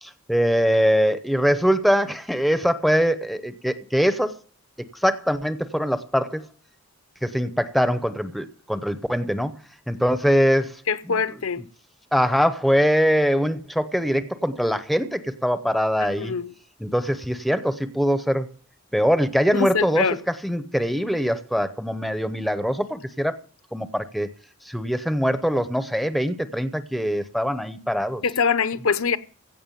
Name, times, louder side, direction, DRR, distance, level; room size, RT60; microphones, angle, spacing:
voice 1, 0.0-4.4 5.0-6.4 7.2-9.6 9.9-10.8 11.1-11.2 12.1-16.3 16.8-18.5 18.9-20.1 20.4-23.4 23.7-24.3 24.7-28.2, equal, ahead, 0.7 m, -22 dB
voice 2, 10.9-11.6 16.1-16.5 19.5-20.2 28.2-29.2, left 5 dB, 70° left, 0.8 m, -24 dB
16.0 x 6.1 x 9.0 m
head